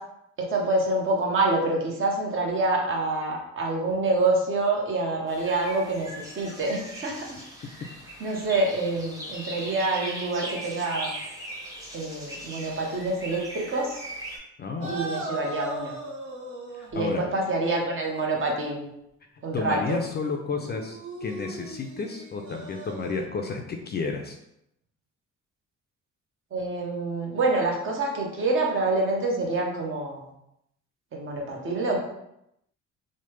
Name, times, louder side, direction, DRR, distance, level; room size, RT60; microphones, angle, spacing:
voice 1, 0.5-6.1 6.4-7.1 8.2-11.1 11.9-14.0 14.9-16.0 16.9-18.9 19.4-20.0 26.5-30.2 31.1-32.0, right 2 dB, 45° right, -1 dB, 0.8 m, -26 dB
sound 1, 5.3-14.4, right 1 dB, 10° right, 1.0 m, -39 dB
voice 2, 14.6-14.9 16.7-17.2 19.5-24.4, left 4 dB, 35° left, 4 dB, 0.4 m, -31 dB
sound 2, 14.8-17.0 18.0-18.3 20.5-23.2, right 1 dB, 75° right, 0.8 m, -38 dB
3.1 x 2.1 x 3.1 m, 0.80 s
cardioid pair, 90°, 30 cm